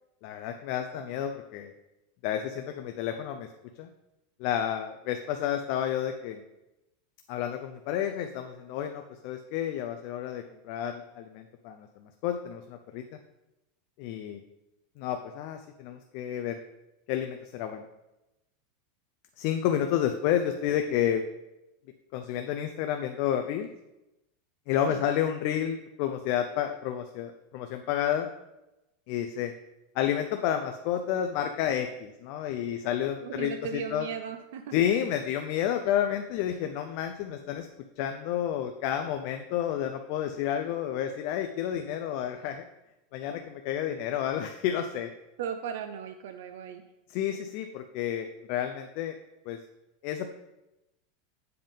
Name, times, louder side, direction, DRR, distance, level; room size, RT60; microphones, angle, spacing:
voice 1, 0.2-1.7 2.2-3.5 3.8-3.9 4.4-6.4 7.3-13.0 14.0-14.4 15.0-16.6 17.1-17.8 19.4-21.2 22.1-23.7 24.7-28.3 29.1-29.5 30.0-33.5 33.9-34.1 34.7-37.7 38.0-42.6 43.1-45.1 47.1-49.2 49.5-49.6 50.0-50.3, left 10 dB, 45° left, 6 dB, 0.4 m, -30 dB
voice 2, 33.2-34.8 45.4-46.8, right 8 dB, 75° right, 7 dB, 0.4 m, -37 dB
7.6 x 3.5 x 5.4 m, 0.95 s
supercardioid pair, 170°, 0 cm